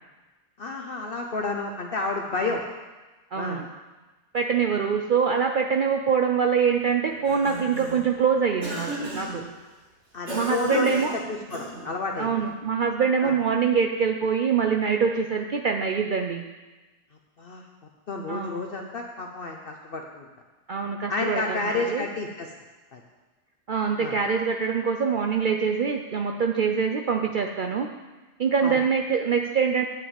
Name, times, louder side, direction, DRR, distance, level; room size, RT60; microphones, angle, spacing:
voice 1, 0.6-2.6 3.3-3.6 10.1-12.3 13.2-13.3 17.4-17.6 18.1-20.3 21.1-22.5 22.9-23.0 24.0-24.2 28.6-28.8, left 3 dB, 55° left, 2 dB, 1.0 m, -30 dB
voice 2, 3.3-3.6 4.3-9.4 10.3-11.1 12.2-16.4 18.3-18.7 20.7-22.0 23.7-27.9 28.4-29.8, right 6 dB, 55° right, 3 dB, 0.7 m, -24 dB
Cough, 7.1-8.1 8.6-9.4 10.3-11.9, right 1 dB, 70° right, 2.6 m, -35 dB
8.9 x 6.1 x 8.1 m, 1.2 s
omnidirectional pair, 1.2 m